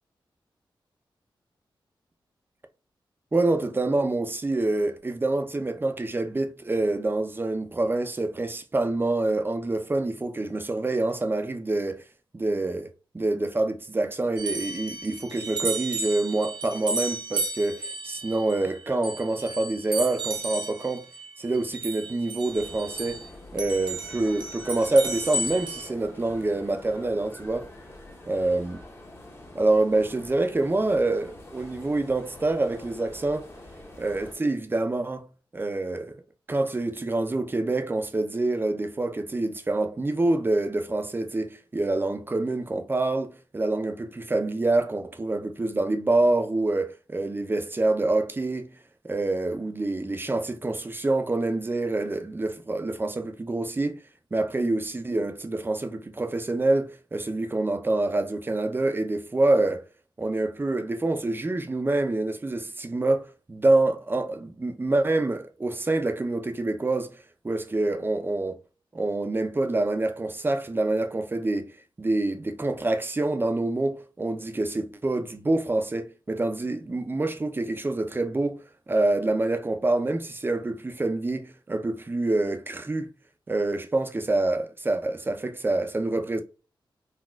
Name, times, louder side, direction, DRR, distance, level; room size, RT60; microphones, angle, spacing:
voice 1, 3.3-12.0 12.3-12.9 13.1-21.1 21.4-23.2 23.5-27.7 28.3-28.8 29.5-33.5 34.0-35.3 35.5-36.2 36.5-48.7 49.0-54.0 54.3-59.8 60.2-67.2 67.4-68.6 68.9-71.7 72.0-83.1 83.5-86.4, right 2 dB, 25° right, 0.5 m, -26 dB
sound 1, 14.4-23.3 23.6-25.9, right 3 dB, 65° right, 0.8 m, -33 dB
sound 2, 22.4-34.3, left 1 dB, 25° left, 0.8 m, -46 dB
4.0 x 2.3 x 2.2 m
wide cardioid pair, 85°, 9 cm